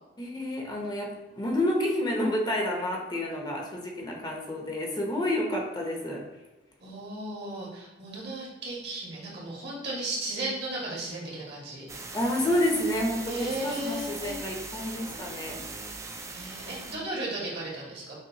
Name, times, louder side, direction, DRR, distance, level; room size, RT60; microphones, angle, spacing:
voice 1, 0.2-6.2 12.1-15.6, left 1 dB, 25° left, 0 dB, 0.7 m, -29 dB
voice 2, 6.8-11.9 13.3-14.4 16.3-18.2, right 2 dB, 60° right, -4 dB, 1.4 m, -35 dB
sound 1, 11.9-17.0, right 3 dB, 15° right, 0.3 m, -40 dB
6.2 x 2.3 x 2.8 m, 1.1 s
head